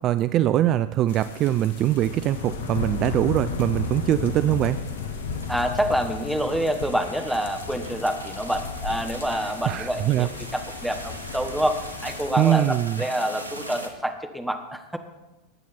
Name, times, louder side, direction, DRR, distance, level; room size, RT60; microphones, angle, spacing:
voice 1, 0.0-4.8 9.7-10.3 12.4-13.0, right 13 dB, 35° right, 13 dB, 0.4 m, -22 dB
sound 1, 1.1-12.3, left 5 dB, 60° left, 1.5 m, -34 dB
sound 2, 1.8-13.9, right 1 dB, 85° left, 1.6 m, -42 dB
voice 2, 5.5-15.0, equal, ahead, 5 dB, 1.4 m, -27 dB
20.0 x 9.0 x 4.3 m, 1.0 s
figure-of-eight pair, 90°, 0 cm